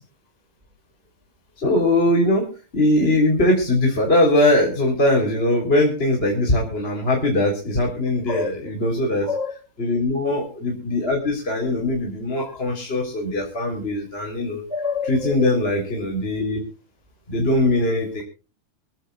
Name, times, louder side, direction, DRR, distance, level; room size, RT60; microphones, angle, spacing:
voice 1, 1.6-2.4 2.7-9.3 9.8-14.6 15.1-16.6 17.3-18.2, left 1 dB, 15° left, 0 dB, 3.5 m, -21 dB
voice 2, 8.3-8.7 9.2-9.5 12.4-12.6 14.7-15.5, left 4 dB, 50° right, 7 dB, 0.4 m, -28 dB
26.0 x 14.0 x 2.3 m, 0.36 s
omnidirectional pair, 4.0 m